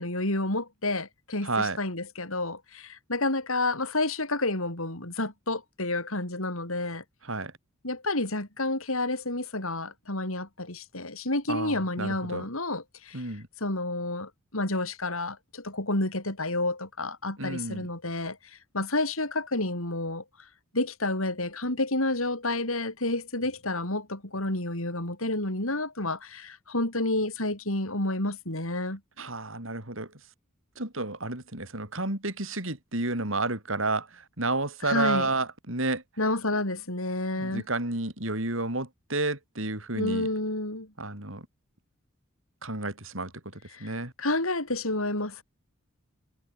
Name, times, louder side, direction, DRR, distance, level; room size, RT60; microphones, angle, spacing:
voice 1, 0.0-7.0 7.8-13.2 13.6-20.2 20.7-29.0 34.8-35.3 36.2-37.6 40.0-40.9 43.7-43.9 44.2-45.4, left 2 dB, 80° left, 7.7 m, -30 dB
voice 2, 1.4-1.8 7.2-7.5 11.5-12.5 13.1-13.5 17.4-17.9 29.2-30.1 30.8-36.0 37.3-40.3 41.0-41.5 42.6-43.3 43.8-44.1, right 2 dB, 65° right, 6.0 m, -31 dB
head